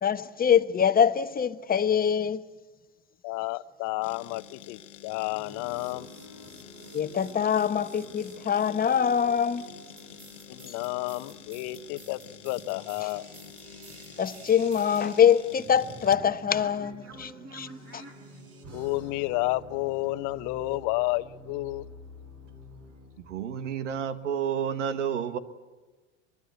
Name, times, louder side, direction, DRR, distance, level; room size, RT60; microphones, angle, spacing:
voice 1, 0.0-2.4 6.9-9.7 14.2-17.7 17.9-18.0, left 8 dB, 25° left, 1.1 m, -24 dB
voice 2, 3.2-6.1 10.5-13.3 18.7-21.9, left 19 dB, 55° left, 0.9 m, -31 dB
sound 1, 4.0-17.3, left 11 dB, 80° left, 1.3 m, -48 dB
sound 2, 5.3-23.3, right 1 dB, 40° right, 4.6 m, -48 dB
voice 3, 23.2-25.4, right 8 dB, 80° right, 1.6 m, -30 dB
23.0 x 22.5 x 8.2 m
hypercardioid pair, 80°, 36 cm